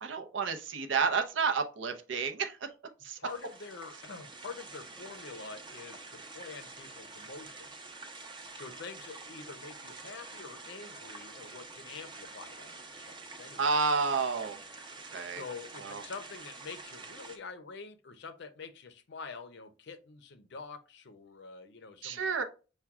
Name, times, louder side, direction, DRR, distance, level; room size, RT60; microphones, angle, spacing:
voice 1, 0.0-2.7 3.0-3.2 13.6-14.6 15.1-15.4 15.8-16.0 22.0-22.4, right 5 dB, 65° right, 0.6 m, -30 dB
voice 2, 3.2-8.0 8.5-13.6 15.4-22.4, left 4 dB, 60° left, 0.5 m, -46 dB
sound 1, 3.3-17.4, right 3 dB, 25° right, 0.7 m, -47 dB
5.8 x 2.2 x 3.5 m
head